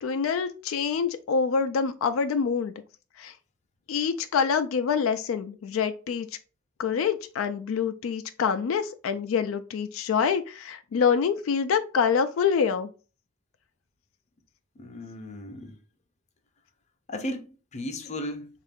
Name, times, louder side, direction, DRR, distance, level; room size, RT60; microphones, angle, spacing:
voice 1, 0.0-2.7 3.2-3.3 3.9-6.3 6.8-12.9, left 6 dB, 85° left, 0.3 m, -26 dB
voice 2, 14.8-15.7 17.1-18.5, left 1 dB, 35° left, 0.6 m, -35 dB
3.6 x 2.4 x 3.4 m
head